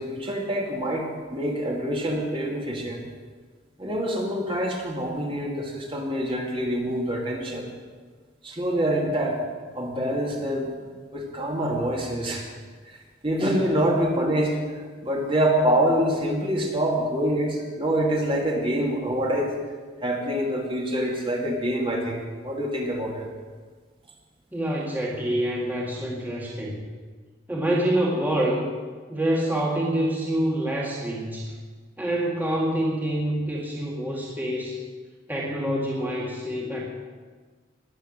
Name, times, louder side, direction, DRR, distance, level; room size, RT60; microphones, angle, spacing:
voice 1, 0.0-3.0 3.8-7.7 8.4-9.4 9.8-10.7 11.1-12.5 12.9-19.5 20.0-23.3, right 1 dB, 25° right, 0 dB, 2.3 m, -26 dB
voice 2, 24.5-26.8 27.5-28.7 29.1-31.5 32.0-34.8 35.3-36.9, right 1 dB, 10° right, -4 dB, 1.9 m, -26 dB
19.5 x 7.4 x 7.4 m, 1.5 s
head